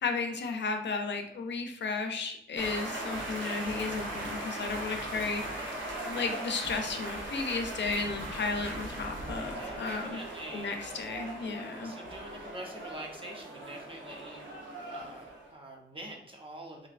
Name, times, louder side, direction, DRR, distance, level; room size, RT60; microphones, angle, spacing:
voice 1, 0.0-5.6 6.0-10.2 10.5-11.9, left 4 dB, 70° left, 6 dB, 0.5 m, -34 dB
sound 1, 2.6-15.5, right 1 dB, 80° right, 0.9 m, -39 dB
sound 2, 6.1-6.5 7.4-7.8 8.6-9.0 9.8-10.2, right 2 dB, 55° right, 1.1 m, -46 dB
voice 2, 9.5-10.9 11.8-14.5 14.9-16.9, right 1 dB, 25° right, 0 dB, 0.8 m, -45 dB
3.9 x 3.1 x 2.5 m, 0.72 s
wide cardioid pair, 80°, 19 cm